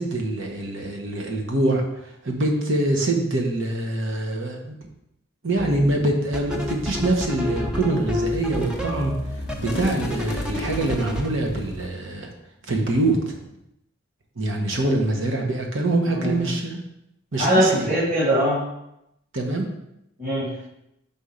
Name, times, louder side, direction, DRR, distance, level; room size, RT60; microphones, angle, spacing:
voice 1, 0.0-1.8 2.2-4.7 5.4-9.1 9.5-12.3 12.7-13.4 14.4-16.8 17.3-17.9 19.3-19.6, right 2 dB, 60° right, 1 dB, 1.1 m, -24 dB
sound 1, 5.6-5.9 6.3-11.3, left 2 dB, 5° right, 0.5 m, -29 dB
sound 2, 6.5-11.9, left 3 dB, 50° left, 0.7 m, -38 dB
voice 2, 16.1-16.5 17.3-18.6 20.2-20.5, equal, 35° right, -9 dB, 2.1 m, -22 dB
5.5 x 4.2 x 5.1 m, 0.83 s
head